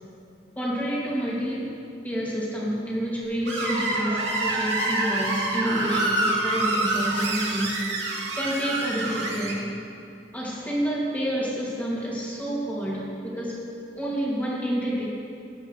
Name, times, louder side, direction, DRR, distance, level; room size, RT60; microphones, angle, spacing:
voice 1, 0.6-1.7 2.0-8.0 8.3-9.7 10.3-13.6 14.0-15.1, equal, 10° left, -6 dB, 2.5 m, -28 dB
Screech, 3.5-9.5, right 2 dB, 90° right, 2.6 m, -27 dB
18.0 x 8.5 x 3.3 m, 2.6 s
head